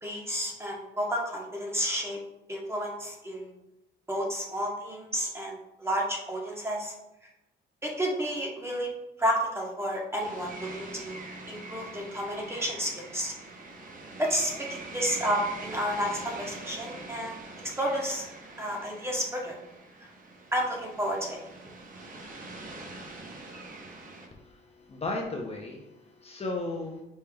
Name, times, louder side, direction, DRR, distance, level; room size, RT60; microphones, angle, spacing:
voice 1, 0.0-2.2 2.5-3.5 4.1-6.9 7.8-8.9 9.2-11.2 11.5-13.3 14.2-17.4 17.8-18.2 18.6-19.6 20.0-20.1 20.5-21.4, equal, 15° right, -1 dB, 1.0 m, -31 dB
sound 1, 10.2-24.3, right 2 dB, 45° right, 0.8 m, -43 dB
voice 2, 24.3-27.0, left 2 dB, 30° left, 0 dB, 0.6 m, -35 dB
5.3 x 3.1 x 2.3 m, 0.90 s
cardioid pair, 90°, 20 cm